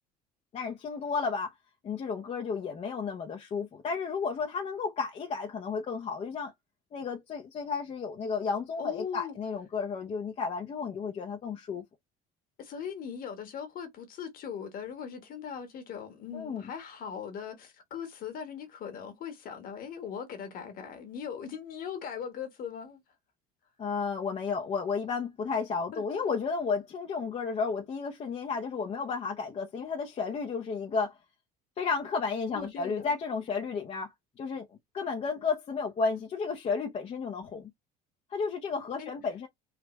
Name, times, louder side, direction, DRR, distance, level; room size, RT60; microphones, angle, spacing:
voice 1, 0.5-1.5 1.8-6.5 6.9-11.8 16.3-16.7 23.8-31.2 31.8-34.7 34.9-37.7 38.3-39.5, left 5 dB, 35° left, 0.7 m, -32 dB
voice 2, 8.8-9.3 12.6-23.0 25.9-26.2 32.5-33.1 39.0-39.1, left 7 dB, 50° left, 1.3 m, -40 dB
3.4 x 2.3 x 3.0 m
supercardioid pair, 105°, 18 cm